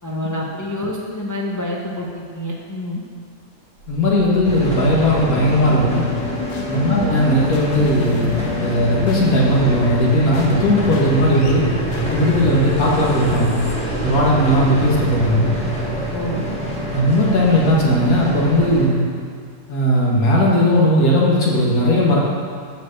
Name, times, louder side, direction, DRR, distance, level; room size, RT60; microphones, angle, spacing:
voice 1, 0.0-3.0 6.9-7.1 16.1-16.4, left 1 dB, 25° left, -3 dB, 0.4 m, -27 dB
sound 1, 3.8-14.8, left 3 dB, 80° left, 1.4 m, -31 dB
voice 2, 3.9-6.1 6.7-8.3 8.6-11.7 12.0-13.6 14.0-15.5 16.9-19.0 19.7-22.2, equal, 65° left, -4 dB, 1.9 m, -17 dB
sound 2, 4.4-18.8, right 1 dB, 5° left, 1.3 m, -26 dB
6.2 x 5.0 x 6.5 m, 2.1 s
omnidirectional pair, 1.7 m